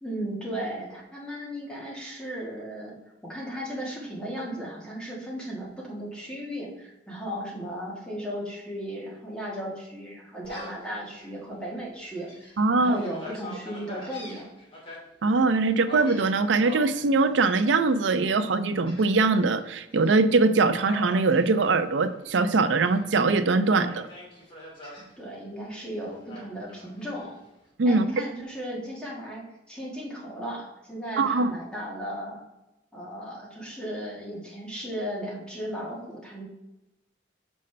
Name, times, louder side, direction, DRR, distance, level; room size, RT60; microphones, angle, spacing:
voice 1, 0.0-2.9 3.2-14.5 25.2-27.4 27.8-32.4 32.9-36.4, equal, 5° left, -4 dB, 1.6 m, -36 dB
Gull seagull, 10.4-10.9 11.4-11.5 12.0-15.0 15.9-17.0 17.5-18.0 18.8-19.5 19.9-20.1 20.7-22.2 22.6-23.3 23.7-25.0 26.3-27.3, left 1 dB, 30° left, 2.3 m, -43 dB
voice 2, 12.6-13.0 15.2-24.1 27.8-28.0 31.2-31.5, right 3 dB, 90° right, 11 dB, 0.5 m, -22 dB
6.6 x 5.3 x 3.3 m, 0.97 s
head